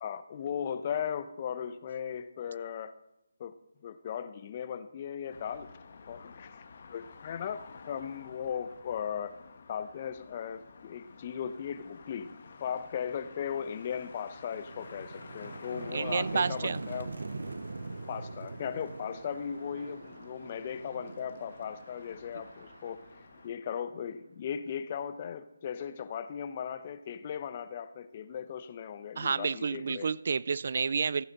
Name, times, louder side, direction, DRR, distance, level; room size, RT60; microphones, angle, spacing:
voice 1, 0.0-2.9 3.4-3.5 3.8-5.7 6.1-9.3 9.7-12.3 12.6-17.1 18.1-23.0 23.4-30.1, left 8 dB, 35° left, 0.8 m, -37 dB
sound 1, 5.3-23.5, left 5 dB, 50° left, 1.2 m, -52 dB
sound 2, 12.7-12.9 13.3-24.1, right 3 dB, 70° right, 0.8 m, -43 dB
voice 2, 15.9-16.8 29.2-31.2, right 5 dB, 55° right, 0.3 m, -30 dB
15.0 x 8.9 x 4.1 m
figure-of-eight pair, 155°, 0 cm